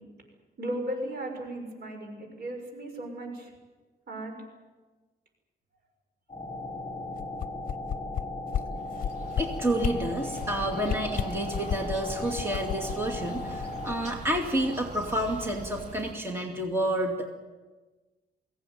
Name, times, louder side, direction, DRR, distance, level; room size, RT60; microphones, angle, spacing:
voice 1, 0.6-3.5 4.1-4.3, right 1 dB, 75° right, 3 dB, 6.8 m, -36 dB
sound 1, 6.3-14.0, left 2 dB, 20° left, 6.7 m, -37 dB
sound 2, 7.2-8.2 8.5-8.6 9.0-9.4 9.8-9.9 10.3-10.5 10.8-12.0 12.3-13.9 14.3-14.4, left 9 dB, 55° left, 0.8 m, -31 dB
sound 3, 8.7-16.1, right 1 dB, 45° right, 3.2 m, -43 dB
voice 2, 9.4-17.3, right 1 dB, 15° right, 1 dB, 2.5 m, -29 dB
23.5 x 17.0 x 9.5 m, 1.3 s
wide cardioid pair, 165°, 17 cm